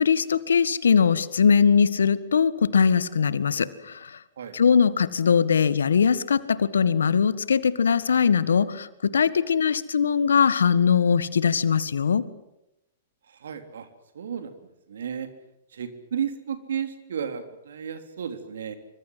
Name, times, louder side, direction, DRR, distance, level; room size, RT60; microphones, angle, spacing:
voice 1, 0.0-4.2 4.5-12.2, left 6 dB, 75° left, 16 dB, 1.6 m, -21 dB
voice 2, 13.3-13.9 14.2-14.5 14.9-15.3 15.7-18.7, right 8 dB, 70° right, 8 dB, 3.6 m, -33 dB
26.5 x 24.5 x 7.7 m, 0.88 s
hypercardioid pair, 110°, 0 cm